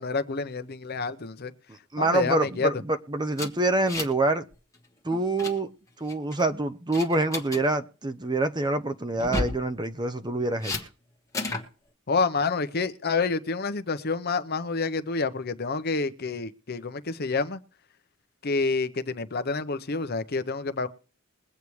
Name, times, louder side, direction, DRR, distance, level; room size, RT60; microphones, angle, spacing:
voice 1, 0.0-1.5 2.0-2.7 12.1-17.6 18.4-20.9, left 4 dB, 50° left, 0.8 m, -28 dB
voice 2, 1.7-4.4 5.0-5.7 6.0-10.8, right 2 dB, 20° right, 0.7 m, -26 dB
sound 1, 3.3-4.3 4.5-4.8 5.1-5.5 6.1-6.4 6.9-7.6 9.1-9.6 10.6-10.8 11.3-11.7, left 2 dB, 15° left, 1.4 m, -32 dB
22.0 x 8.3 x 3.2 m
head